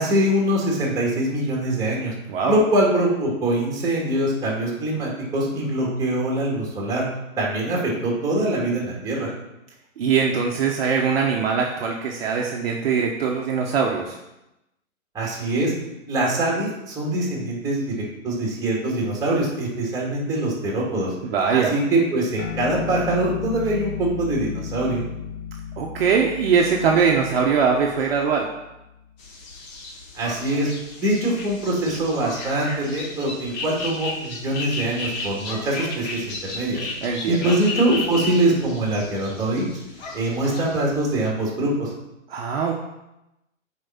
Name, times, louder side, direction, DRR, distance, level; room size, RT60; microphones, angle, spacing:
voice 1, 0.0-2.1 2.5-7.0 7.4-9.3 15.1-15.7 16.1-17.9 18.2-21.1 21.5-25.0 30.1-30.7 31.0-36.8 37.3-39.7 40.1-41.9, right 1 dB, 10° right, -4 dB, 2.2 m, -23 dB
voice 2, 10.0-14.2 21.2-21.7 25.8-28.5 37.0-37.5 42.3-42.7, right 6 dB, 45° right, -1 dB, 1.0 m, -22 dB
sound 1, 22.4-29.2, left 8 dB, 85° left, 1.5 m, -34 dB
sound 2, 29.2-41.3, left 3 dB, 35° left, 1.4 m, -34 dB
8.0 x 4.8 x 5.7 m, 0.92 s
hypercardioid pair, 145°, 41 cm